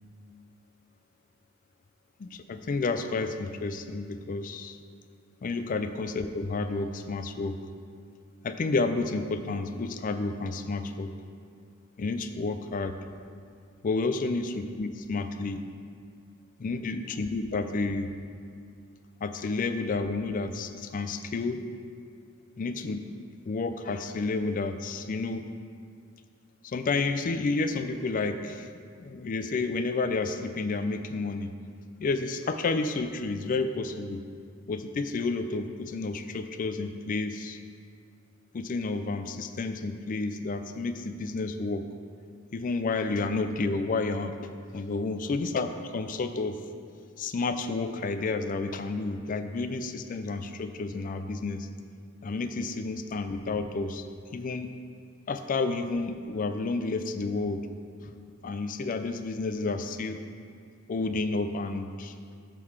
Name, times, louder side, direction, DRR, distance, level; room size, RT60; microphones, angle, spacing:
voice 1, 2.2-4.8 5.4-7.6 8.4-11.1 12.0-13.0 13.8-15.6 16.6-18.1 19.2-21.6 22.6-23.1 23.4-25.4 26.6-28.7 29.0-31.5 32.0-34.2 34.7-37.6 38.5-41.9 42.5-46.6 47.2-51.7 52.2-54.0 54.3-54.7 55.3-57.7 58.0-58.1 58.4-60.2 60.9-62.1, left 3 dB, 40° left, 9 dB, 0.4 m, -30 dB
8.0 x 3.8 x 6.3 m, 2.2 s
head